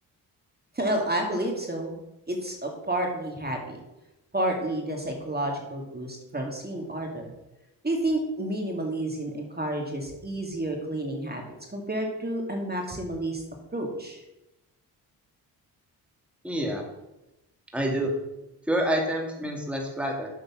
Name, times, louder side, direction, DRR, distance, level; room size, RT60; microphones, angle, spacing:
voice 1, 0.7-1.9 2.3-3.8 4.3-7.3 7.8-11.4 11.7-13.4 13.7-14.2, right 1 dB, 20° right, 1 dB, 2.3 m, -30 dB
voice 2, 16.4-16.8 17.7-18.1 18.7-20.3, right 1 dB, 5° right, 0 dB, 2.2 m, -27 dB
7.1 x 6.2 x 6.1 m, 0.94 s
supercardioid pair, 50°, 43 cm